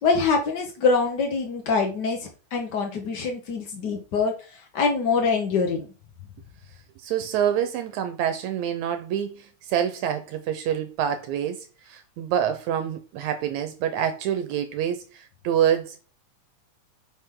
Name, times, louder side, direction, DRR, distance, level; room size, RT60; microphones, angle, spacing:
voice 1, 0.0-4.3 4.7-5.9, left 4 dB, 70° left, 1.0 m, -24 dB
voice 2, 7.0-11.6 11.9-16.0, right 9 dB, 75° right, 2.0 m, -26 dB
7.5 x 5.1 x 3.7 m
omnidirectional pair, 3.4 m